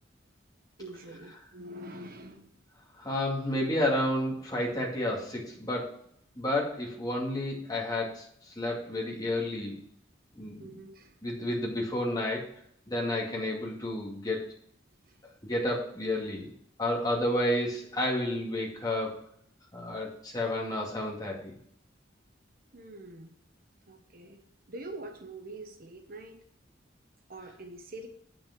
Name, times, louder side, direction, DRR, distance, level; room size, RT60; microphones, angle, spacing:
voice 1, 0.8-2.5 10.6-11.2 15.1-15.2 22.7-23.3 23.9-24.4 24.7-26.4 27.3-28.1, right 2 dB, 50° right, 6 dB, 1.0 m, -44 dB
voice 2, 3.0-5.9 6.4-9.8 10.3-10.7 11.2-12.5 12.9-14.4 15.4-16.5 16.8-19.2 19.7-21.5, left 1 dB, 20° left, -3 dB, 2.4 m, -31 dB
8.7 x 6.1 x 6.1 m, 0.67 s
head